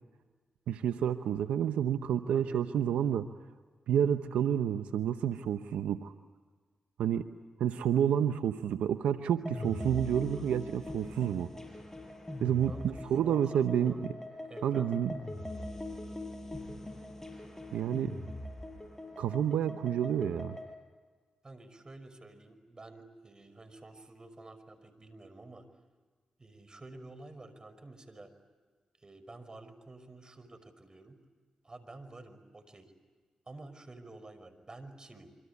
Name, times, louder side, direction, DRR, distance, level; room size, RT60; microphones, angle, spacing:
voice 1, 0.7-3.3 3.9-6.1 7.0-11.5 12.4-13.9 14.6-15.1 17.7-18.2 19.2-20.6, right 9 dB, 85° right, 9 dB, 0.8 m, -29 dB
voice 2, 2.3-2.7 12.7-14.0 14.5-15.0 21.4-25.7 26.4-28.3 29.0-31.2 31.6-32.9 33.5-35.3, right 2 dB, 35° right, 10 dB, 5.5 m, -50 dB
sound 1, 9.5-20.7, left 1 dB, 20° left, 7.9 m, -42 dB
27.5 x 25.5 x 8.3 m, 1.4 s
supercardioid pair, 40°, 2 cm